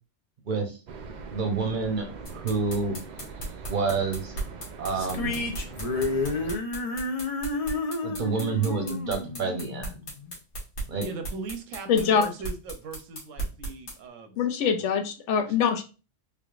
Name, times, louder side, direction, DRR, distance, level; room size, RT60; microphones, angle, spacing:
voice 1, 0.5-0.8 1.3-3.0 3.7-4.3 4.8-5.5 8.0-9.9 10.9-11.0, right 4 dB, 45° right, 4 dB, 0.8 m, -28 dB
sound 1, 0.9-6.6, right 4 dB, 60° right, 0.4 m, -42 dB
sound 2, 2.3-14.0, right 2 dB, 90° left, 1.7 m, -36 dB
sound 3, 5.0-10.3, left 3 dB, 50° left, 0.4 m, -31 dB
voice 2, 11.0-14.3 15.4-15.6, right 4 dB, 90° right, 7 dB, 1.0 m, -39 dB
voice 3, 11.9-12.3 14.4-15.8, left 7 dB, 75° left, 6 dB, 0.8 m, -23 dB
3.5 x 3.4 x 2.4 m, 0.33 s
omnidirectional pair, 1.3 m